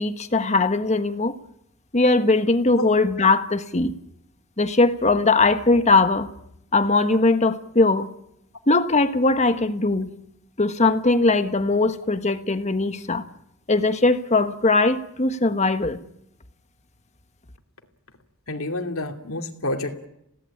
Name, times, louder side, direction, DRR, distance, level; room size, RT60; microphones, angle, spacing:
voice 1, 0.0-1.3 1.9-3.9 4.6-6.3 6.7-8.1 8.7-10.1 10.6-13.2 13.7-16.0, left 3 dB, 35° left, 1.4 m, -20 dB
voice 2, 18.5-20.1, left 1 dB, 75° left, 2.6 m, -29 dB
21.5 x 17.5 x 8.6 m
head